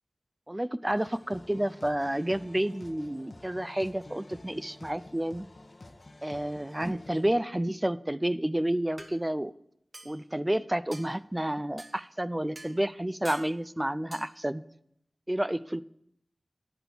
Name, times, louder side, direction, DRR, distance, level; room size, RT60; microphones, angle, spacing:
voice 1, 0.5-5.5 6.2-9.5 10.1-14.6 15.3-15.8, right 1 dB, 15° right, 15 dB, 0.3 m, -30 dB
sound 1, 0.9-7.3, left 2 dB, 55° left, 1.0 m, -50 dB
sound 2, 8.3-8.4 9.0-9.1 9.9-10.2 10.9-11.1 11.8-11.9 12.6-12.7 13.2-13.5 14.1-14.3, right 1 dB, 40° right, 1.0 m, -45 dB
11.0 x 5.2 x 6.0 m, 0.75 s
wide cardioid pair, 70°, 0 cm